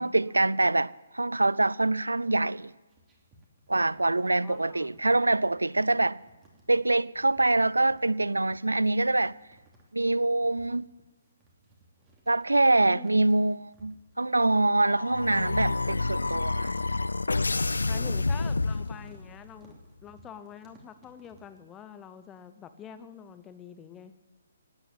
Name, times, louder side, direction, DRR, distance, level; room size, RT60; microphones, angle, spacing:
voice 1, 0.0-2.7 3.7-6.2 6.7-9.3 9.9-10.9 12.3-16.8, right 2 dB, 85° right, 0.4 m, -25 dB
sound 1, 2.7-21.6, right 1 dB, 15° right, 3.0 m, -60 dB
voice 2, 4.4-5.0 12.9-13.1 17.9-19.8 20.0-24.1, left 8 dB, 15° left, 0.8 m, -46 dB
sound 2, 14.4-19.4, left 3 dB, 75° left, 0.5 m, -29 dB
17.5 x 8.9 x 9.1 m
figure-of-eight pair, 135°, 0 cm